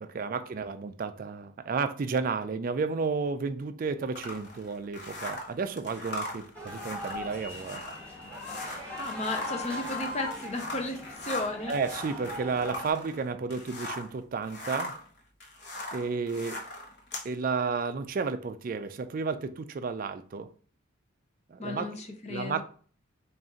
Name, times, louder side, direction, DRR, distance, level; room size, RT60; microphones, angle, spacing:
voice 1, 0.0-7.8 11.7-15.0 15.9-16.6 17.2-20.5 21.5-21.9 22.3-22.6, right 4 dB, 40° right, 0.3 m, -32 dB
sound 1, 4.1-14.1 14.4-17.3, left 2 dB, 55° left, 0.9 m, -40 dB
sound 2, 6.5-12.9, left 2 dB, 5° left, 0.9 m, -40 dB
voice 2, 9.0-11.8 21.6-22.6, left 2 dB, 30° left, 0.5 m, -34 dB
4.0 x 2.5 x 3.6 m
head